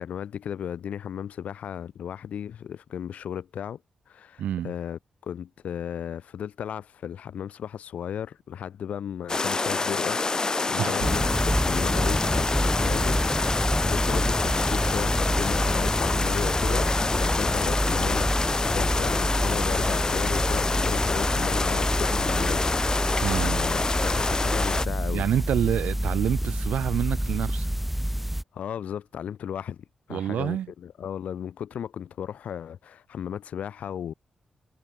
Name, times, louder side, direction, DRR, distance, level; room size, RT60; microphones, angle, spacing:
voice 1, 0.0-3.8 4.1-25.2 28.5-34.1, left 9 dB, 80° left, 2.0 m, -35 dB
voice 2, 4.4-4.7 10.8-11.1 23.2-23.6 25.1-27.7 30.1-30.7, right 10 dB, 85° right, 0.8 m, -27 dB
sound 1, 9.3-24.8, left 3 dB, 30° left, 0.6 m, -27 dB
sound 2, 11.0-28.4, equal, 5° right, 1.0 m, -27 dB
cardioid pair, 75°, 2 cm